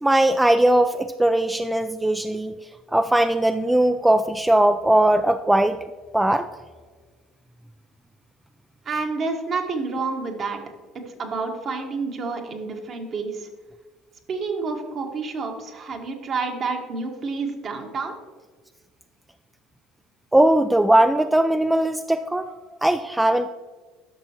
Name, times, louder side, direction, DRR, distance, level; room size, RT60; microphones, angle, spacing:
voice 1, 0.0-2.5 2.9-5.8 6.1-6.5 20.3-22.5 22.8-23.5, right 1 dB, 10° right, 9 dB, 0.3 m, -19 dB
voice 2, 8.8-10.6 10.9-13.5 14.3-18.2, right 4 dB, 45° right, 3 dB, 1.4 m, -29 dB
11.5 x 6.2 x 2.9 m, 1.5 s
hypercardioid pair, 75°, 0 cm